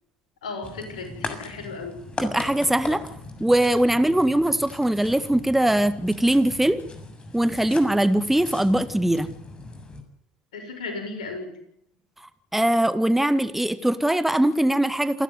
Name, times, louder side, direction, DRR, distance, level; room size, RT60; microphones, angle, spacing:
voice 1, 0.4-2.0 10.5-11.6, left 3 dB, 85° left, 4 dB, 6.7 m, -35 dB
sound 1, 0.6-10.0, left 3 dB, 25° left, 7.0 m, -39 dB
voice 2, 2.2-3.1 3.4-6.8 7.3-9.3 12.5-15.2, right 1 dB, 5° right, 12 dB, 1.8 m, -21 dB
28.5 x 13.0 x 9.6 m, 0.74 s
hypercardioid pair, 70°, 4 cm